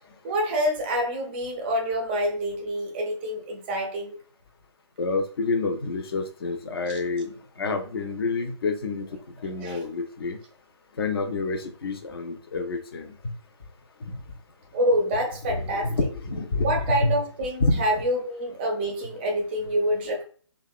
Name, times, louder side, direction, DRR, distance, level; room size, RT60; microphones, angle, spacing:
voice 1, 0.2-4.2 6.9-7.0 9.6-9.8 14.7-15.9 16.6-20.2, equal, 20° right, 2 dB, 0.4 m, -27 dB
voice 2, 5.0-7.3 7.6-9.0 9.4-10.4 11.0-13.1 15.5-17.2 17.6-17.8, left 3 dB, 50° left, 6 dB, 0.5 m, -28 dB
2.8 x 2.1 x 2.2 m, 0.43 s
figure-of-eight pair, 145°, 16 cm